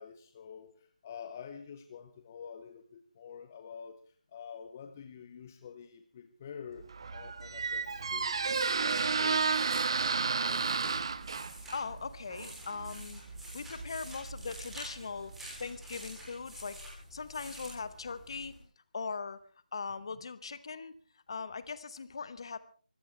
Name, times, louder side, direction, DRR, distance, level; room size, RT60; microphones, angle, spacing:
voice 1, 0.0-10.1 10.4-11.2, left 7 dB, 20° left, 9 dB, 0.7 m, -48 dB
Squeak, 6.8-15.6, right 5 dB, 35° right, 0.8 m, -33 dB
sound 1, 7.6-18.6, equal, 5° right, 3.3 m, -49 dB
voice 2, 11.7-13.2 13.5-15.3 15.6-16.8 17.1-18.5 18.9-19.4 19.7-20.9 21.3-22.6, left 5 dB, 35° left, 15 dB, 1.0 m, -40 dB
24.5 x 15.5 x 3.3 m, 0.41 s
figure-of-eight pair, 165°, 5 cm